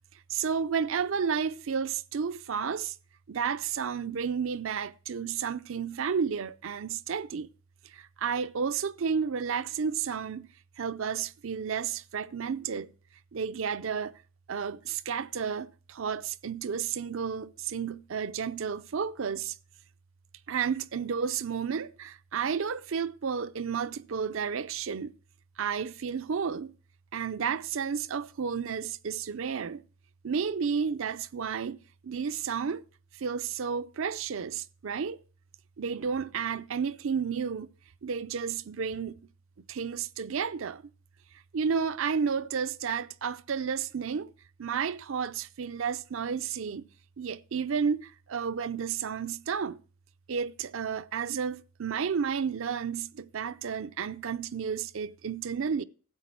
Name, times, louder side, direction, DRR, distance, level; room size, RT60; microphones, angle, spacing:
voice 1, 0.3-3.0 3.3-7.5 7.9-10.5 10.8-12.9 13.3-14.2 14.5-19.6 20.5-25.1 25.6-26.8 27.1-29.8 30.2-31.8 32.0-32.8 33.2-35.2 35.8-37.7 38.0-39.2 39.7-40.8 41.5-44.3 44.6-46.9 47.2-49.8 50.3-55.8, right 6 dB, 65° right, 0.5 m, -32 dB
13.0 x 8.3 x 4.5 m
head